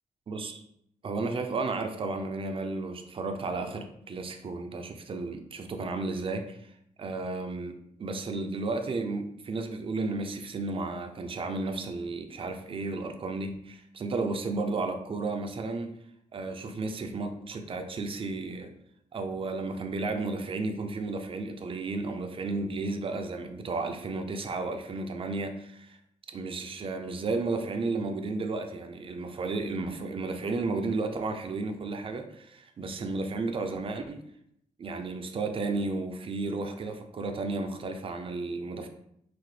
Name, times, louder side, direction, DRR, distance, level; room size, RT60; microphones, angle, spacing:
voice 1, 0.3-0.6 1.0-6.7 7.0-16.0 16.3-18.7 19.1-26.0 26.3-34.2 34.8-38.9, right 3 dB, 40° right, 6 dB, 0.5 m, -33 dB
5.8 x 2.1 x 3.2 m, 0.74 s
wide cardioid pair, 130°, 14 cm